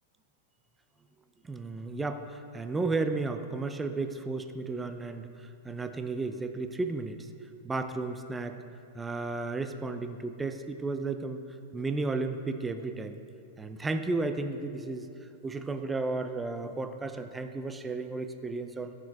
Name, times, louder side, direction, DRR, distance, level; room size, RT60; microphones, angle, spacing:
voice 1, 1.4-7.3 7.6-8.6 8.9-11.4 11.7-13.2 13.6-15.1 15.4-18.9, right 3 dB, 15° right, 8 dB, 0.5 m, -33 dB
14.0 x 6.1 x 3.5 m, 2.5 s
hypercardioid pair, 110°, 0 cm